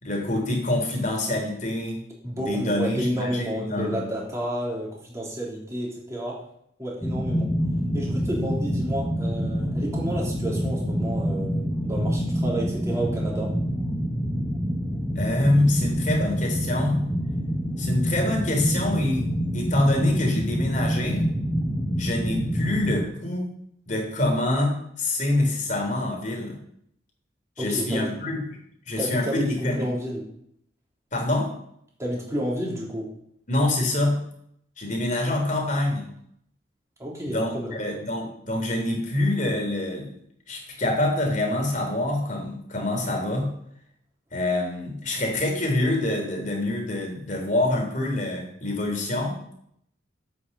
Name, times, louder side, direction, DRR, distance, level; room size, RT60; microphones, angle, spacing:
voice 1, 0.0-2.0 2.3-4.0 15.1-17.0 17.8-19.3 19.5-21.3 22.0-23.5 23.9-26.5 27.6-28.5 28.9-29.8 31.1-31.5 33.5-34.2 34.8-36.0 37.2-40.1 40.5-43.5 44.3-49.4, left 1 dB, 45° left, 1 dB, 3.4 m, -26 dB
voice 2, 2.2-6.4 6.8-7.5 7.9-13.5 27.6-28.2 29.0-30.3 32.0-33.1 37.0-37.7, equal, 15° right, -4 dB, 3.5 m, -30 dB
sound 1, 7.0-23.1, equal, 5° left, 0.8 m, -27 dB
8.6 x 7.0 x 7.0 m, 0.71 s
head